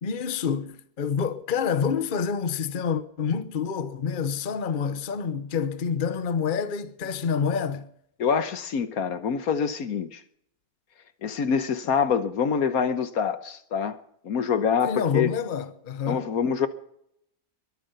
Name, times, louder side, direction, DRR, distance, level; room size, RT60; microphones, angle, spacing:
voice 1, 0.0-7.9 14.8-16.3, left 6 dB, 35° left, 1.0 m, -27 dB
voice 2, 8.2-10.2 11.2-14.0 14.2-15.3 16.1-16.7, left 6 dB, 65° left, 1.4 m, -25 dB
22.0 x 9.6 x 6.7 m
omnidirectional pair, 1.7 m